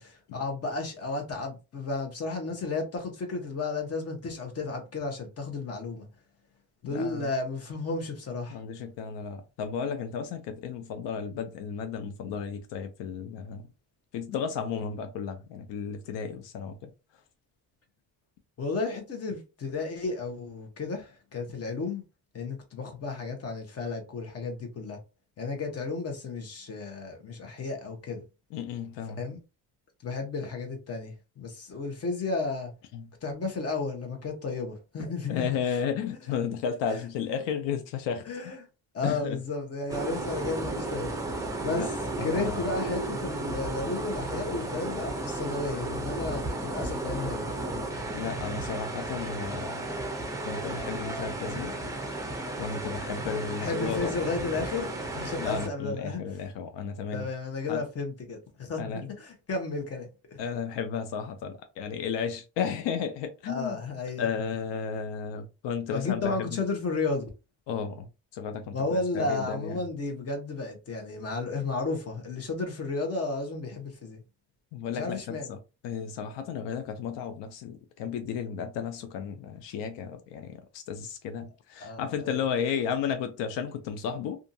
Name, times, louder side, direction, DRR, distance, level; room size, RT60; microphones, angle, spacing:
voice 1, 0.0-6.1 6.8-8.6 18.6-22.0 22.3-25.0 25.4-28.2 29.1-29.4 30.0-32.7 33.2-35.8 36.2-36.3 36.9-37.0 38.2-38.6 38.9-41.1 41.6-41.9 42.2-47.5 53.6-56.4 57.1-60.4 63.5-64.3 65.9-67.3 68.7-74.2 74.9-75.5 81.8-82.4, left 3 dB, 35° left, 0.9 m, -33 dB
voice 2, 6.8-7.3 8.5-13.7 14.1-16.8 28.5-29.2 32.9-33.0 35.3-38.3 39.0-39.4 41.7-41.9 42.2-42.6 48.1-49.9 50.4-51.7 52.6-54.1 55.4-57.3 57.7-57.8 58.8-59.0 60.4-63.8 64.2-66.4 67.7-68.1 68.3-69.8 74.7-75.6 75.8-84.4, left 6 dB, 85° left, 0.5 m, -33 dB
sound 1, 39.9-55.7, right 2 dB, 10° right, 0.5 m, -34 dB
2.6 x 2.5 x 2.6 m
cardioid pair, 125°, 42 cm